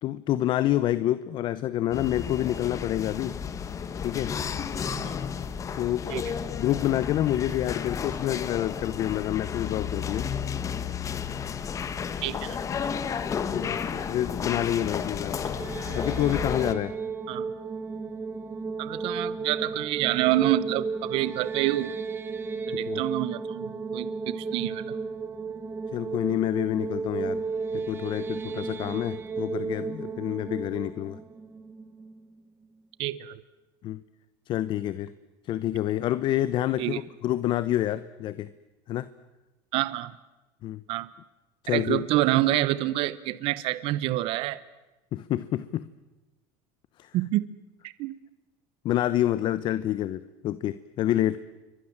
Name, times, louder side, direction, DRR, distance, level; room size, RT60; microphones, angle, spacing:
voice 1, 0.0-3.4 4.0-4.3 5.8-10.3 13.5-13.8 14.1-15.5 15.9-17.0 22.7-23.0 25.9-27.4 27.7-31.2 33.8-34.0 34.5-35.1 35.4-38.5 38.9-39.1 40.6-40.8 41.6-42.0 45.1-45.9 47.0-47.1 48.8-51.4, left 13 dB, 50° left, 15 dB, 0.9 m, -28 dB
sound 1, 1.9-16.7, left 7 dB, 30° left, 1.8 m, -32 dB
voice 2, 12.2-12.6 17.3-17.5 18.8-22.0 22.7-25.0 33.0-33.4 36.8-37.0 39.7-40.1 40.9-41.1 41.7-44.6 47.1-47.5 48.0-48.2, right 16 dB, 60° right, 17 dB, 1.0 m, -27 dB
sound 2, 15.3-32.4, right 4 dB, 20° right, 1.7 m, -34 dB
29.0 x 23.5 x 7.4 m, 1.1 s
supercardioid pair, 120°, 11 cm